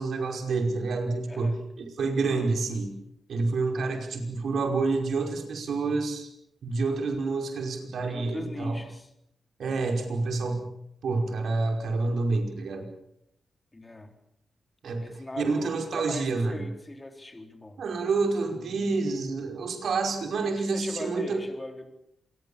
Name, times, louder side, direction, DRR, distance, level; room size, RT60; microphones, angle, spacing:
voice 1, 0.0-2.9 3.3-6.3 6.6-8.8 9.6-10.7 11.0-12.9 14.8-15.0 15.4-16.6 17.8-21.4, right 3 dB, 75° right, 3 dB, 5.3 m, -28 dB
voice 2, 1.3-1.6 8.1-9.1 13.7-14.1 15.0-17.8 20.4-21.9, left 1 dB, 20° left, 5 dB, 4.1 m, -40 dB
27.0 x 21.0 x 7.1 m, 0.77 s
cardioid pair, 90°, 0 cm